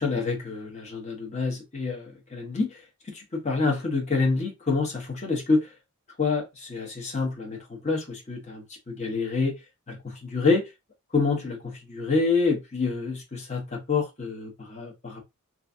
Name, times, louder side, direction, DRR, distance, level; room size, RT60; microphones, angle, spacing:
voice 1, 0.0-2.8 3.1-5.7 6.2-9.6 9.9-10.7 11.1-15.2, left 4 dB, 30° left, 0.9 m, -27 dB
3.1 x 2.4 x 2.5 m
head